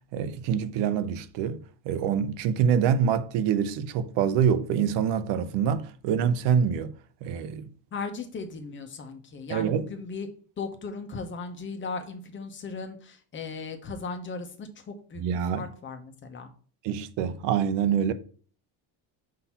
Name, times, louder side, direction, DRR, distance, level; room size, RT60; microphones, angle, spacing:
voice 1, 0.1-1.6 1.8-6.9 7.2-7.7 9.5-9.9 15.2-15.7 16.8-18.1, right 7 dB, 75° right, 0.8 m, -25 dB
voice 2, 7.9-10.3 10.6-15.2 15.5-16.5, left 4 dB, 25° left, 0.8 m, -37 dB
6.2 x 2.8 x 5.6 m
cardioid pair, 165°, 43 cm